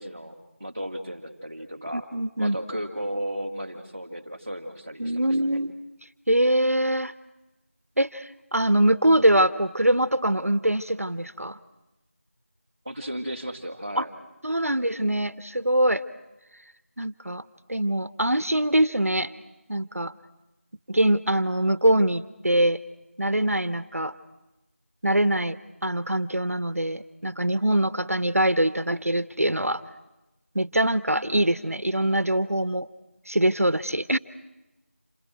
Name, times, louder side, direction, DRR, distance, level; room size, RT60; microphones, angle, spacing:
voice 1, 0.0-2.1 2.4-5.6 12.8-14.1, equal, 15° right, -5 dB, 2.0 m, -35 dB
voice 2, 1.9-2.6 5.0-5.7 6.3-7.1 8.0-11.6 14.0-14.1 14.4-16.0 17.0-17.4 17.7-19.3 19.7-20.1 20.9-22.8 23.2-24.1 25.0-29.8 30.5-32.9 33.3-34.2, right 1 dB, 80° right, 14 dB, 1.3 m, -23 dB
28.0 x 26.5 x 6.3 m, 1.0 s
figure-of-eight pair, 180°, 8 cm